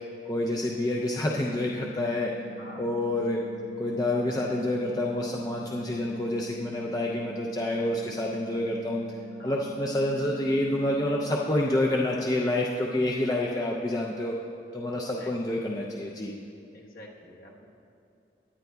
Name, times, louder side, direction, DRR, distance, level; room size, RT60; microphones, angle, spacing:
voice 1, 0.3-2.3 2.8-3.4 3.8-9.0 9.4-14.3 14.7-16.3, left 1 dB, 20° left, -2 dB, 0.4 m, -28 dB
sound 1, 1.3-11.3, right 1 dB, 35° right, 0.8 m, -43 dB
voice 2, 2.6-2.9 9.4-9.7 15.0-15.6 16.7-17.7, left 1 dB, 50° left, -2 dB, 1.1 m, -48 dB
17.0 x 10.0 x 2.2 m, 2.5 s
head